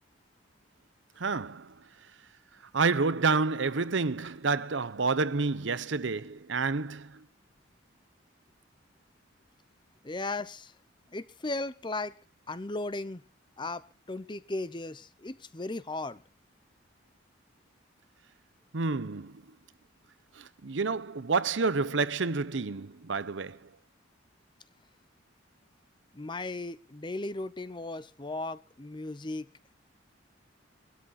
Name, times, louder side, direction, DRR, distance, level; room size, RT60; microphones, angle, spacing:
voice 1, 1.2-1.8 2.7-7.2 18.7-19.4 20.4-23.7, right 4 dB, 65° right, 0.8 m, -29 dB
voice 2, 10.0-10.7 11.1-12.1 12.5-13.2 13.6-16.2 26.1-29.5, left 2 dB, 25° left, 0.7 m, -36 dB
22.5 x 12.5 x 4.2 m
head